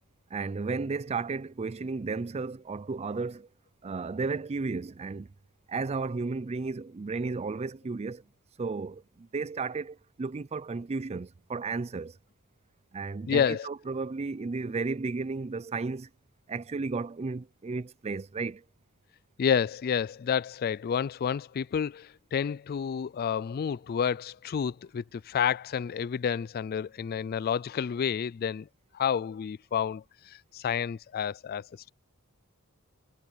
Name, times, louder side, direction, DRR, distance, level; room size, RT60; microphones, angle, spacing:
voice 1, 0.3-3.5 3.8-5.3 5.7-8.2 8.6-12.2 12.9-16.1 16.5-18.6, right 4 dB, 30° right, 0.4 m, -33 dB
voice 2, 13.3-13.7 19.4-28.7 28.9-31.9, left 7 dB, 45° left, 0.3 m, -30 dB
head